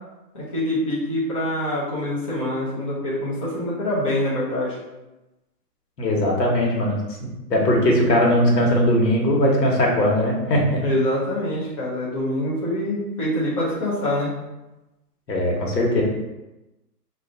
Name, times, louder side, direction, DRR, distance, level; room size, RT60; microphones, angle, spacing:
voice 1, 0.3-4.8 10.8-14.3, left 1 dB, 20° left, -9 dB, 0.6 m, -25 dB
voice 2, 6.0-10.8 15.3-16.0, equal, 90° left, -1 dB, 1.4 m, -20 dB
3.2 x 2.6 x 3.7 m, 1.0 s
hypercardioid pair, 165°, 49 cm